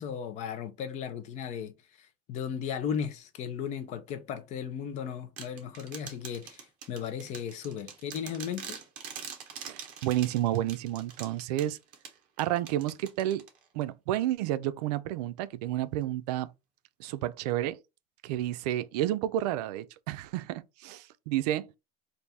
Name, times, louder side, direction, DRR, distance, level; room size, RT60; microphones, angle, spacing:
voice 1, 0.0-8.8, left 8 dB, 35° left, 0.6 m, -36 dB
sound 1, 5.4-13.8, right 7 dB, 45° right, 1.1 m, -45 dB
voice 2, 9.6-11.8 12.4-13.4 13.7-16.5 17.0-17.8 18.2-21.7, right 13 dB, 85° right, 0.5 m, -31 dB
3.4 x 2.6 x 4.1 m
cardioid pair, 160°, 20 cm